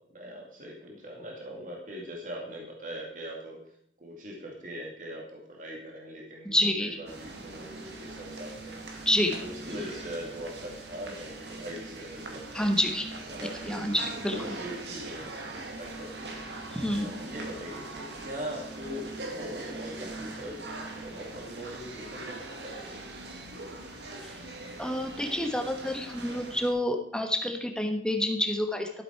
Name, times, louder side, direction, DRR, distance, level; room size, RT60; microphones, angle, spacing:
voice 1, 0.1-3.6 4.0-6.5 6.8-8.9 9.4-12.7 13.3-13.8 14.3-15.3 15.8-16.4 17.0-19.1 19.3-20.6 20.9-23.0, equal, 45° right, -1 dB, 2.4 m, -41 dB
voice 2, 6.4-7.0 9.0-9.4 9.7-9.8 12.5-13.1 13.6-14.5 16.7-17.1 24.2-24.4 24.8-29.0, left 1 dB, 5° left, 4 dB, 1.2 m, -28 dB
sound 1, 7.1-26.7, right 2 dB, 70° right, 2.0 m, -41 dB
12.5 x 8.1 x 4.6 m, 0.71 s
head